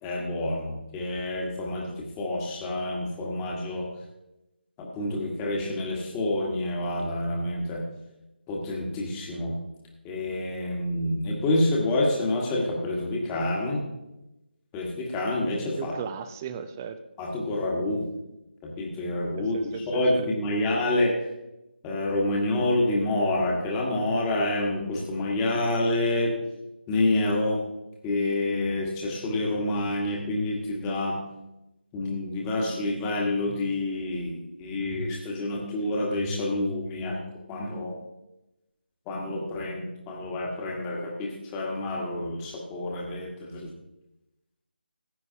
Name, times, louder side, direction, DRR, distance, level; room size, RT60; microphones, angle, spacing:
voice 1, 0.0-3.9 4.8-7.8 8.5-9.6 10.0-13.9 14.7-15.9 17.2-18.0 18.6-19.6 19.9-21.1 21.8-26.3 26.9-27.6 28.0-31.2 31.9-37.2 37.5-37.9 39.1-43.7, left 2 dB, 10° left, -2 dB, 1.4 m, -28 dB
voice 2, 15.8-17.0 19.3-20.2, right 7 dB, 15° right, 10 dB, 0.5 m, -36 dB
15.5 x 9.4 x 2.8 m, 0.94 s
figure-of-eight pair, 155°, 6 cm